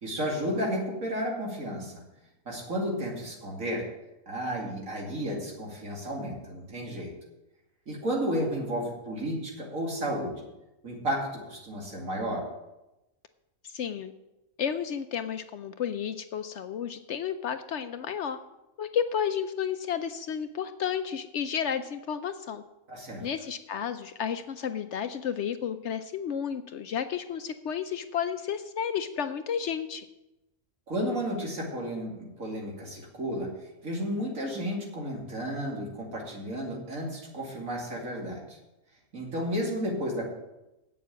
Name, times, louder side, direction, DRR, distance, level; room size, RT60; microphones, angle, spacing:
voice 1, 0.0-2.0 2.5-3.9 4.3-7.1 7.9-10.5 10.8-12.5 22.9-23.3 30.9-33.5 33.8-38.6 39.1-40.3, equal, 70° right, -1 dB, 2.9 m, -32 dB
voice 2, 13.7-14.1 14.6-18.4 18.8-22.6 23.2-30.0, left 8 dB, 65° left, 10 dB, 0.8 m, -32 dB
8.3 x 7.2 x 8.3 m, 0.96 s
omnidirectional pair, 1.5 m